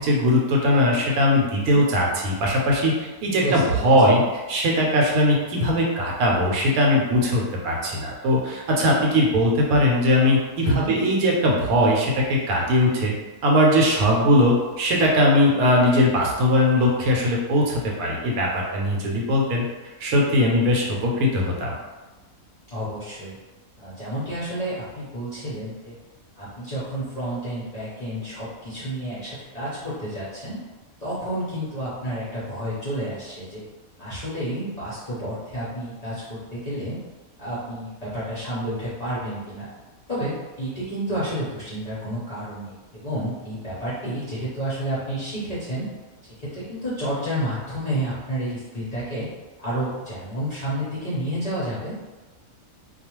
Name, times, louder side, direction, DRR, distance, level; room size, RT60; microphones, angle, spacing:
voice 1, 0.0-4.2 4.5-13.1 13.4-19.6 20.0-21.7, left 1 dB, 75° right, -2 dB, 1.0 m, -20 dB
voice 2, 3.4-4.2 10.6-10.9 22.7-23.4 23.8-25.9 26.4-30.6 31.0-33.6 34.0-37.0 37.4-39.7 40.1-42.7 43.0-45.9 46.4-49.3 49.6-52.1, right 1 dB, 40° left, -11 dB, 0.6 m, -30 dB
2.3 x 2.3 x 2.9 m, 1.2 s
omnidirectional pair, 1.6 m